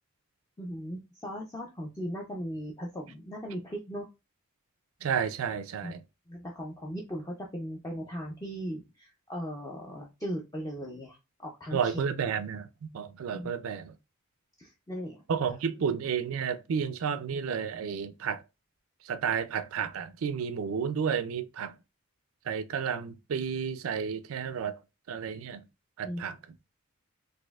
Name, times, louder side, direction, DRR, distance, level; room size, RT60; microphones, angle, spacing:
voice 1, 0.6-4.1 5.8-6.0 6.3-12.0 13.3-13.5 14.6-15.2 26.0-26.2, equal, 15° left, 0.4 m, -38 dB
voice 2, 5.0-6.0 11.7-13.9 15.3-18.4 19.0-21.8 22.5-24.8 25.1-25.6 26.0-26.4, right 7 dB, 75° right, 0.4 m, -31 dB
4.1 x 2.6 x 2.3 m
head